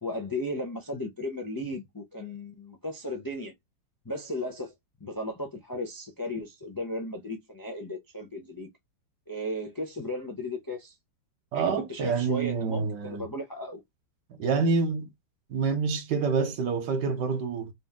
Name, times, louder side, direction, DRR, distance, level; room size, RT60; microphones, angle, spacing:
voice 1, 0.0-3.5 4.0-4.7 5.0-8.7 9.3-10.9 11.5-13.8, left 1 dB, 30° left, 0.4 m, -35 dB
voice 2, 11.5-13.2 14.4-15.1 15.5-17.7, right 5 dB, 75° right, 1.5 m, -27 dB
4.0 x 2.7 x 3.5 m
omnidirectional pair, 1.9 m